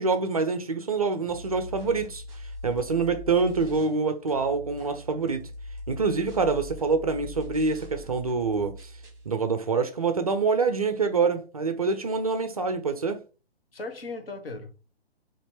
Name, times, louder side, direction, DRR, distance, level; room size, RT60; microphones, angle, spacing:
voice 1, 0.0-5.4 5.9-8.9 9.3-13.2, right 4 dB, 35° right, 0.4 m, -26 dB
sound 1, 1.3-4.0 4.3-9.3, left 2 dB, 15° right, 1.3 m, -42 dB
voice 2, 13.7-15.0, left 3 dB, 60° left, 1.1 m, -38 dB
4.2 x 3.0 x 4.2 m
figure-of-eight pair, 135°, 33 cm